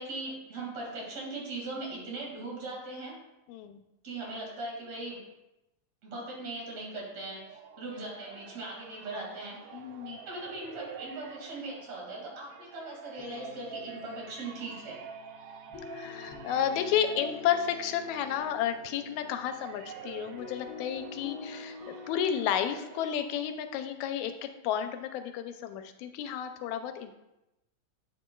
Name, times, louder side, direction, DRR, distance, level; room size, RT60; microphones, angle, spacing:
voice 1, 0.0-3.1 4.0-5.2 6.0-9.8 10.1-15.0, right 2 dB, 60° right, -3 dB, 3.2 m, -39 dB
voice 2, 3.5-3.8 9.7-10.2 15.9-21.8 22.1-27.2, left 9 dB, 85° left, 8 dB, 1.9 m, -32 dB
sound 1, 7.1-24.1, right 6 dB, 80° right, 1.3 m, -48 dB
sound 2, 13.2-23.2, left 5 dB, 65° left, 1.4 m, -48 dB
8.3 x 7.4 x 2.3 m, 0.93 s
omnidirectional pair, 3.3 m